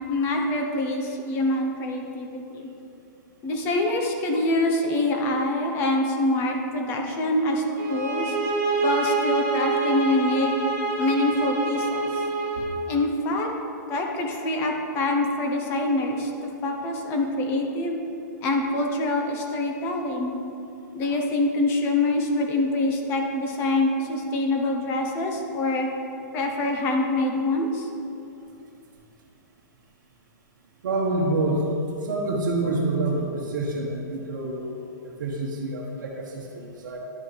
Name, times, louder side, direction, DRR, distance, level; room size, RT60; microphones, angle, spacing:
voice 1, 0.1-2.7 3.4-7.6 7.9-8.4 8.8-10.5 11.0-12.1 12.9-13.5 13.9-18.0 18.4-20.4 20.9-25.9 26.3-27.9, left 2 dB, 20° left, 2 dB, 0.7 m, -25 dB
sound 1, 7.8-12.7, right 4 dB, 30° right, 1.2 m, -26 dB
voice 2, 30.8-31.7 32.0-34.8 35.2-37.0, right 2 dB, 70° right, -5 dB, 1.1 m, -27 dB
10.5 x 5.5 x 3.2 m, 2.7 s
hypercardioid pair, 165°, 10 cm